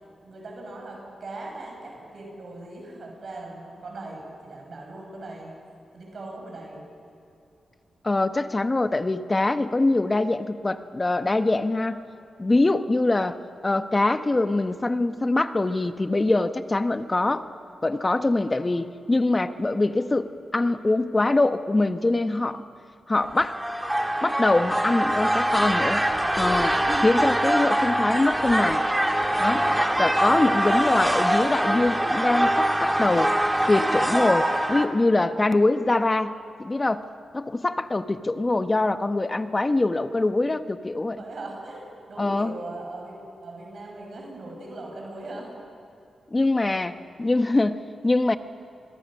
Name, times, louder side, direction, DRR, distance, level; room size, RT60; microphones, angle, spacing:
voice 1, 0.2-5.5 5.9-6.8 12.4-12.7 41.2-45.5, right 2 dB, 60° right, -1 dB, 6.6 m, -39 dB
voice 2, 8.0-12.0 12.4-13.4 13.6-17.5 17.8-22.7 23.1-23.6 24.2-26.0 26.4-28.9 29.4-29.7 30.0-33.4 33.7-36.3 36.6-37.0 37.3-41.2 42.2-42.5 46.3-48.4, left 2 dB, 25° left, 10 dB, 1.1 m, -23 dB
sound 1, 23.2-34.8, right 1 dB, 10° right, 2.2 m, -23 dB
28.0 x 21.5 x 6.4 m, 2.5 s
cardioid pair, 70°, 0 cm